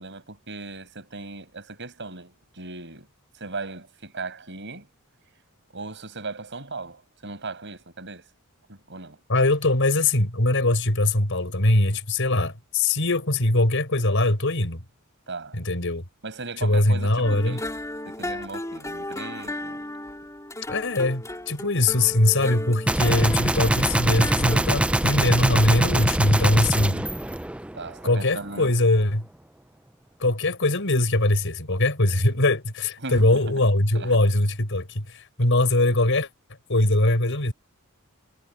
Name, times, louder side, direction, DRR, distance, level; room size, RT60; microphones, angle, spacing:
voice 1, 0.0-3.1 3.3-4.9 5.7-8.3 8.7-9.2 15.3-15.6 16.2-17.7 18.1-19.8 27.7-28.7 33.0-33.6 33.9-34.2, right 3 dB, 60° right, 6.9 m, -37 dB
voice 2, 9.3-14.8 15.5-16.0 16.6-17.6 20.7-27.1 28.0-29.3 30.2-36.3 36.7-37.5, left 2 dB, 60° left, 5.3 m, -22 dB
sound 1, 17.2-24.6, left 1 dB, 15° left, 4.5 m, -35 dB
Gunshot gunfire, 22.9-28.1, right 1 dB, 5° right, 0.4 m, -23 dB
head